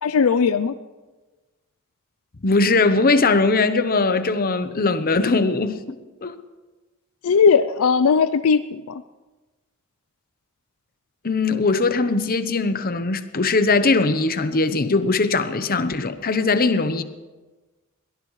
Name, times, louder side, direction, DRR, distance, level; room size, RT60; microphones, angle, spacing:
voice 1, 0.0-0.8 7.2-9.0, left 6 dB, 75° left, 0.4 m, -18 dB
voice 2, 2.4-5.8 6.2-6.4 11.2-17.0, left 3 dB, 45° left, 0.9 m, -20 dB
22.5 x 18.0 x 3.2 m
head